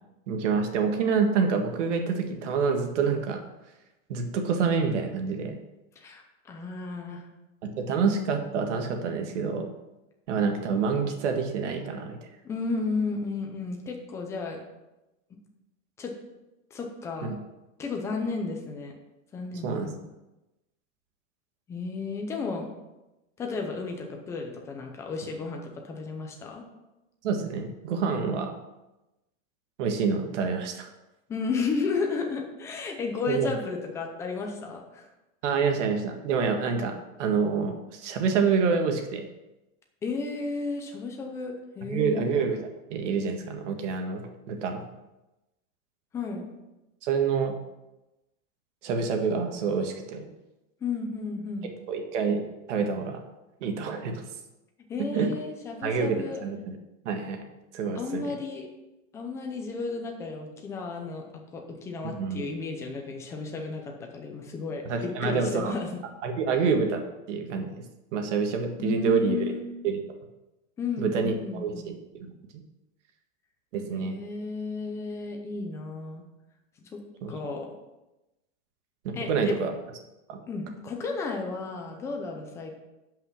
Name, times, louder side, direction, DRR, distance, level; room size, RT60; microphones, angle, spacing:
voice 1, 0.3-3.4 4.1-5.6 7.8-9.7 10.3-12.2 17.2-17.4 19.6-19.9 27.2-28.5 29.8-30.9 33.3-33.5 35.4-39.3 41.8-44.8 47.0-47.6 48.8-50.3 51.9-52.4 52.7-53.2 53.6-54.2 55.1-55.3 55.8-56.8 57.1-57.4 57.7-58.3 62.1-62.4 64.9-65.8 66.2-67.0 67.3-67.7 68.1-69.4 69.8-70.0 71.0-72.3 73.7-74.1 77.2-77.3 79.0-79.7 80.3-80.4, right 5 dB, 60° right, 5 dB, 1.8 m, -27 dB
voice 2, 6.0-7.2 12.4-14.6 16.0-16.1 16.7-17.4 17.8-18.9 19.3-20.1 21.7-22.7 23.4-26.6 31.3-35.1 40.0-42.3 46.1-46.5 50.8-51.7 54.9-56.4 58.0-58.7 59.1-61.2 61.5-66.0 68.8-69.7 70.8-71.9 73.9-76.2 76.9-77.0 77.3-77.7 79.1-79.6 80.5-82.7, left 4 dB, 5° left, 2 dB, 0.5 m, -33 dB
11.0 x 5.8 x 6.0 m, 1.0 s
supercardioid pair, 180°, 40 cm